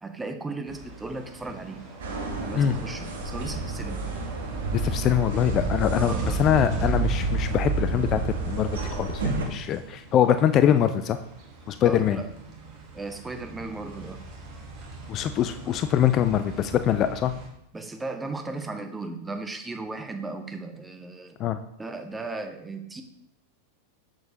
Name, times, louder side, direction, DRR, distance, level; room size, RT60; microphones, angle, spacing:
voice 1, 0.0-1.8 2.4-4.1 5.9-6.4 11.8-12.3 12.9-14.2 17.7-21.4 21.8-23.0, right 3 dB, 10° right, 6 dB, 0.7 m, -36 dB
sound 1, 0.6-17.5, right 2 dB, 45° right, 1.4 m, -43 dB
sound 2, 2.0-9.4, right 3 dB, 65° right, 1.0 m, -29 dB
voice 2, 4.7-6.1 6.4-8.2 8.5-11.2 11.7-12.2 15.1-17.3 21.4-21.6, left 10 dB, 35° left, 10 dB, 0.3 m, -23 dB
6.7 x 6.1 x 2.7 m, 0.77 s
figure-of-eight pair, 90°, 0 cm